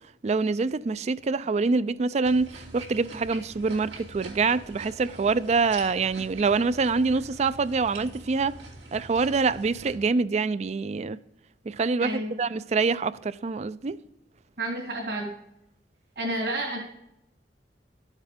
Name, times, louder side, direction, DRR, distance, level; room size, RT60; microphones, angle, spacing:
voice 1, 0.2-8.5 8.9-11.2 11.7-14.0, right 4 dB, 40° right, 0.4 m, -25 dB
sound 1, 2.2-9.9, right 3 dB, 85° right, 2.8 m, -44 dB
voice 2, 12.0-12.4 14.6-15.3 16.2-16.8, right 1 dB, 65° right, 2.7 m, -30 dB
12.0 x 7.4 x 5.0 m
head